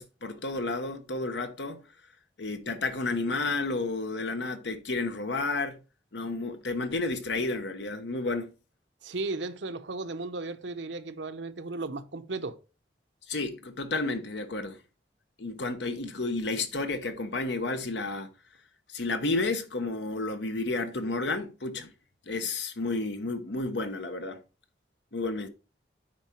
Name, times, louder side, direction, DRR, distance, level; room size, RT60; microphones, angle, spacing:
voice 1, 0.0-1.8 2.4-5.8 6.1-8.5 13.3-14.8 15.4-18.3 18.9-21.9 22.3-24.4 25.1-25.5, left 3 dB, 75° left, 1.0 m, -31 dB
voice 2, 9.0-12.6, right 3 dB, 85° right, 0.8 m, -35 dB
8.8 x 4.8 x 4.4 m
head